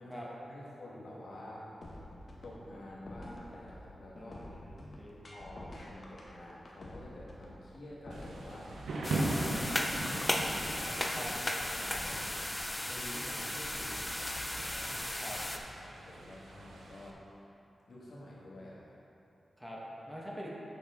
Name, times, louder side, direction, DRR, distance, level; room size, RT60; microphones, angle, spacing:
voice 1, 0.0-1.6 2.4-4.4 5.2-8.7 9.1-11.3 11.6-12.3 12.8-15.4 15.8-17.2 17.9-18.9, left 1 dB, 70° left, -6 dB, 1.6 m, -49 dB
sound 1, 1.8-11.7, left 1 dB, 50° left, 1.1 m, -48 dB
voice 2, 4.2-5.3 11.1-11.3 15.1-15.4 19.6-19.8 20.1-20.5, equal, 10° right, -5 dB, 1.2 m, -45 dB
Thunder / Rain, 8.1-17.1, right 2 dB, 85° right, 0.6 m, -40 dB
sound 2, 9.0-15.6, left 1 dB, 20° left, 0.5 m, -36 dB
7.1 x 5.8 x 3.7 m, 2.9 s
cardioid pair, 70°, 0 cm